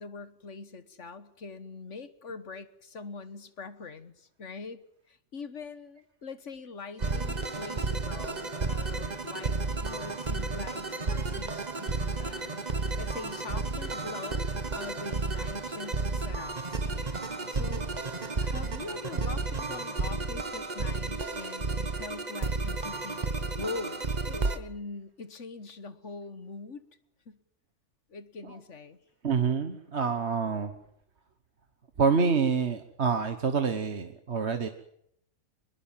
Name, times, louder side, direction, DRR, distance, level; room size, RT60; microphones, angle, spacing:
voice 1, 0.0-4.8 5.1-12.6 13.0-14.4 14.8-17.9 18.4-23.2 23.6-26.8 27.3-27.4 28.1-29.0, left 4 dB, 60° left, 13 dB, 1.7 m, -43 dB
sound 1, 7.0-24.6, right 3 dB, 35° right, 1.3 m, -32 dB
voice 2, 29.2-30.7 32.0-34.7, right 5 dB, 55° right, 8 dB, 1.6 m, -27 dB
24.0 x 21.0 x 7.5 m, 0.73 s
omnidirectional pair, 1.4 m